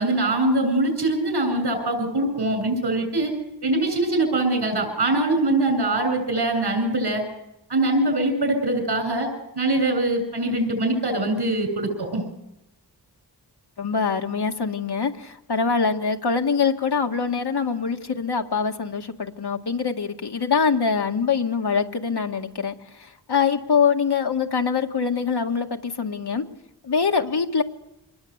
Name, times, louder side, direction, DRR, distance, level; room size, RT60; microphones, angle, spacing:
voice 1, 0.0-3.3 3.6-7.2 7.7-9.3 9.5-12.3, right 2 dB, 75° right, 6 dB, 7.9 m, -23 dB
voice 2, 13.8-26.5 26.8-27.6, left 5 dB, 70° left, 4 dB, 2.1 m, -24 dB
26.0 x 20.5 x 8.2 m, 0.88 s
cardioid pair, 55°, 40 cm